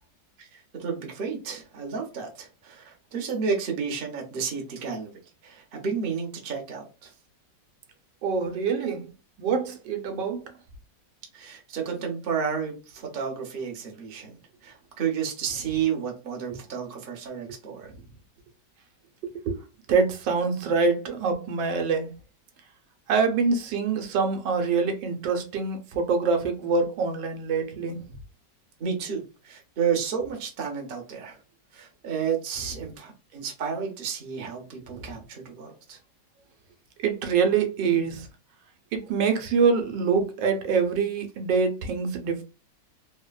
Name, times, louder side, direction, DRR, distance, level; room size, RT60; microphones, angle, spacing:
voice 1, 0.4-5.1 5.4-7.1 11.3-17.9 28.8-31.4 31.7-36.0, right 6 dB, 55° right, 0.6 m, -31 dB
voice 2, 8.2-9.1 9.4-10.5 16.5-16.6 17.9-18.0 19.2-19.6 19.9-22.1 23.1-28.0 34.9-35.1 37.0-38.3 38.9-42.4, right 5 dB, 85° right, 1.2 m, -25 dB
3.1 x 2.1 x 2.3 m
omnidirectional pair, 1.9 m